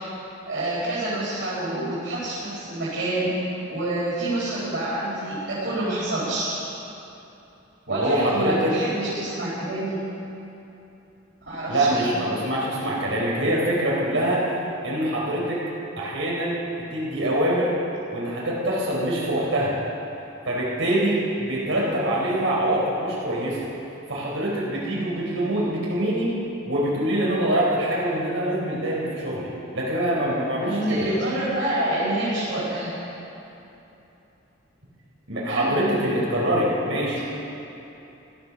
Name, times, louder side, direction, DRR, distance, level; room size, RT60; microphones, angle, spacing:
voice 1, 0.5-3.3 3.7-6.5 7.9-10.0 11.5-12.1 21.8-22.0 30.6-32.9 35.5-35.7 37.2-37.3, right 1 dB, 60° right, -11 dB, 4.9 m, -27 dB
voice 2, 7.9-8.7 11.7-14.5 14.8-15.6 16.0-17.7 18.1-19.7 20.5-23.6 24.1-26.3 26.7-31.1 35.3-37.2, right 1 dB, 85° right, -5 dB, 3.8 m, -24 dB
16.5 x 12.5 x 6.9 m, 2.9 s
head